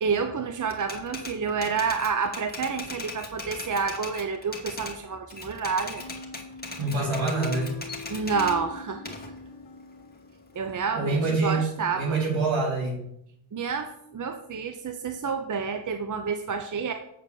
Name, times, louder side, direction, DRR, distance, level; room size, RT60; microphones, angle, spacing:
voice 1, 0.0-6.0 8.1-9.1 10.5-12.2 13.5-16.9, right 5 dB, 40° right, 7 dB, 0.8 m, -29 dB
Typewriter, 0.7-5.0 5.3-8.6 9.1-10.7, left 3 dB, 20° left, 2.0 m, -39 dB
sound 1, 6.0-10.7, left 4 dB, 60° left, 1.4 m, -41 dB
voice 2, 6.8-7.7 10.9-13.0, right 3 dB, 70° right, -1 dB, 4.0 m, -26 dB
8.2 x 4.7 x 7.0 m, 0.77 s
cardioid pair, 65°, 47 cm